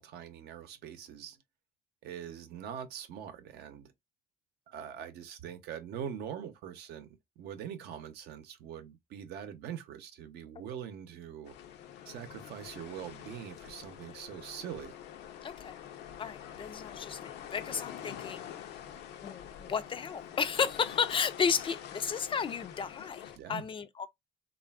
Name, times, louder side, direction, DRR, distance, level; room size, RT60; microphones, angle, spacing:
voice 1, 0.0-1.4 2.0-3.9 4.7-7.1 7.4-11.5 12.1-15.0 23.3-23.6, right 9 dB, 75° right, 0.7 m, -43 dB
sound 1, 11.4-23.4, left 10 dB, 80° left, 0.6 m, -46 dB
voice 2, 15.4-15.7 16.2-18.5 19.2-24.1, left 6 dB, 30° left, 0.3 m, -33 dB
3.3 x 2.4 x 2.3 m
cardioid pair, 110°, 17 cm